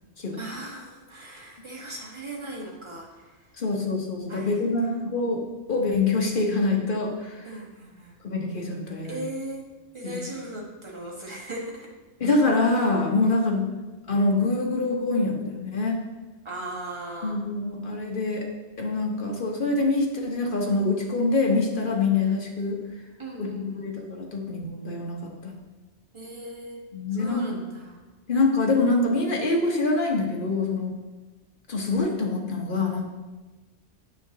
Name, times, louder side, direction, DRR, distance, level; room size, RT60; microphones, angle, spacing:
voice 1, 0.3-3.5 4.3-4.9 7.4-8.2 9.1-11.9 13.2-13.7 16.4-17.4 23.2-23.9 26.1-26.8 27.1-28.0, right 1 dB, 25° right, -2 dB, 1.4 m, -38 dB
voice 2, 3.6-5.4 5.7-7.5 8.2-9.2 10.0-10.3 12.2-13.6 14.1-16.0 17.2-18.5 18.8-22.8 23.4-25.6 26.9-27.6 28.3-30.9 31.7-33.1, left 3 dB, 45° left, 0 dB, 1.2 m, -25 dB
9.0 x 6.8 x 2.8 m, 1.2 s
omnidirectional pair, 1.2 m